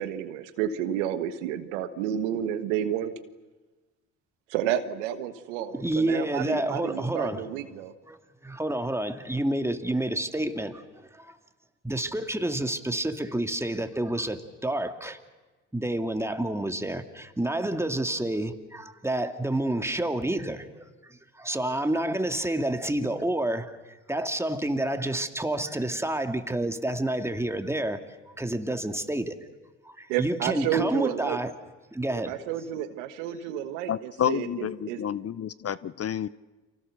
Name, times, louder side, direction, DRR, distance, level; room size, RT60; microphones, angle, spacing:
voice 1, 0.0-3.1 4.5-7.9 30.1-31.4 32.1-35.0, right 10 dB, 90° right, 1.4 m, -30 dB
voice 2, 5.7-7.5 8.1-8.2 8.4-11.4 11.8-15.2 15.7-20.8 21.1-28.0 28.4-29.3 29.8-31.5 31.9-32.4, right 1 dB, 5° right, 2.4 m, -29 dB
voice 3, 33.9-36.3, left 9 dB, 40° left, 0.7 m, -29 dB
30.0 x 24.5 x 6.7 m
hypercardioid pair, 60°, 35 cm